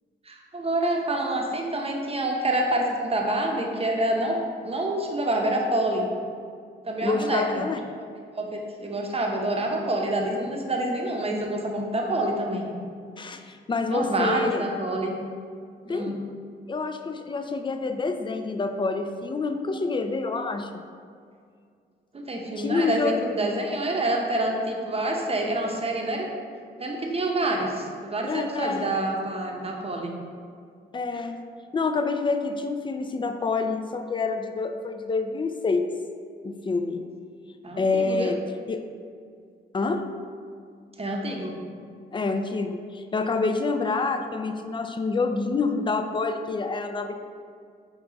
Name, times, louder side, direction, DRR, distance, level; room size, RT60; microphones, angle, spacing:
voice 1, 0.3-4.4 4.6-6.1 6.8-7.7 8.3-12.7 13.9-15.1 15.8-16.1 22.1-26.3 26.8-30.1 37.6-38.3 41.0-41.5, right 1 dB, 30° right, 0 dB, 0.8 m, -27 dB
voice 2, 7.0-7.8 13.2-14.6 15.9-16.2 16.7-20.7 22.6-23.2 28.3-28.9 30.9-31.4 31.7-35.9 36.4-37.0 37.8-38.4 38.7-38.8 39.7-40.0 42.1-47.1, left 4 dB, 25° left, 7 dB, 0.4 m, -27 dB
5.4 x 2.3 x 3.8 m, 2.2 s
supercardioid pair, 55°, 21 cm